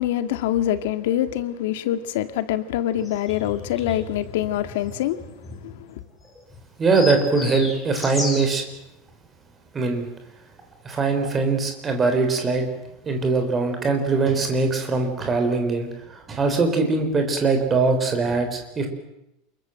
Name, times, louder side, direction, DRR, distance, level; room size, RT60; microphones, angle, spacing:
voice 1, 0.0-5.2 5.6-6.0, left 12 dB, 75° left, 2.0 m, -25 dB
sound 1, 2.9-8.6, left 3 dB, 5° left, 5.9 m, -35 dB
voice 2, 6.8-8.6 9.7-10.1 10.8-12.7 13.0-18.9, right 3 dB, 15° right, 3.8 m, -22 dB
28.0 x 22.0 x 7.7 m
supercardioid pair, 175°, 0 cm